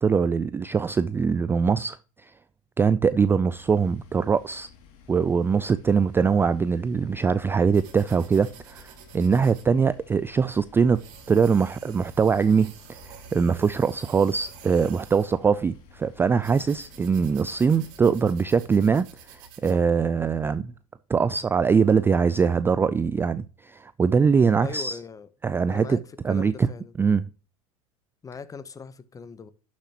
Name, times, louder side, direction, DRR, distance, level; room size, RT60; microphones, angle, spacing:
voice 1, 0.0-2.3 2.8-4.7 5.1-12.7 13.0-20.7 21.1-25.0 25.4-26.0 26.2-26.7 27.0-27.2, right 5 dB, 15° right, 0.3 m, -22 dB
sound 1, 3.5-18.5, left 6 dB, 55° left, 2.4 m, -53 dB
sound 2, 7.7-19.8, right 7 dB, 50° right, 2.4 m, -49 dB
voice 2, 24.6-25.3 25.7-26.9 28.2-29.5, left 5 dB, 20° left, 0.8 m, -40 dB
11.5 x 7.2 x 2.9 m
hypercardioid pair, 105°, 18 cm